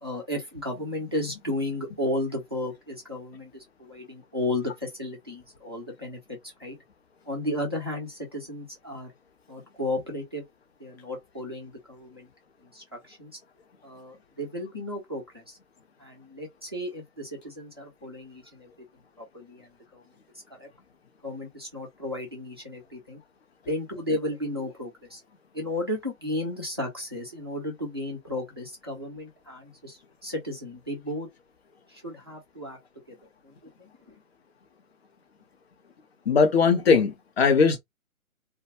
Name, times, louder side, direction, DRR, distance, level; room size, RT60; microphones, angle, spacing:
voice 1, 0.0-6.8 7.3-9.1 9.5-10.4 10.8-12.3 12.6-13.4 13.8-15.6 16.0-18.7 19.2-20.0 20.6-20.7 21.2-23.2 23.7-25.2 25.5-31.3 31.9-32.8 33.1-33.2 33.4-34.1, left 1 dB, 20° right, 0.4 m, -34 dB
voice 2, 36.3-37.8, left 5 dB, 45° left, 0.8 m, -20 dB
2.2 x 2.1 x 2.9 m
figure-of-eight pair, 135°, 43 cm